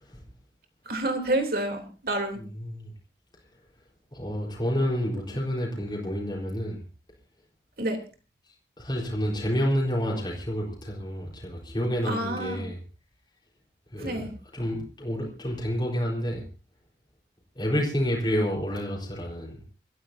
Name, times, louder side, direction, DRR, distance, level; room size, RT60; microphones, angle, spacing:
voice 1, 0.9-2.4 5.3-5.6 7.8-8.0 12.1-12.7 14.0-14.3, right 1 dB, 55° right, 4 dB, 3.5 m, -29 dB
voice 2, 4.1-6.8 8.8-12.8 13.9-14.3 14.5-16.4 17.6-19.6, equal, 25° left, -2 dB, 4.4 m, -29 dB
27.5 x 14.5 x 2.8 m, 0.34 s
head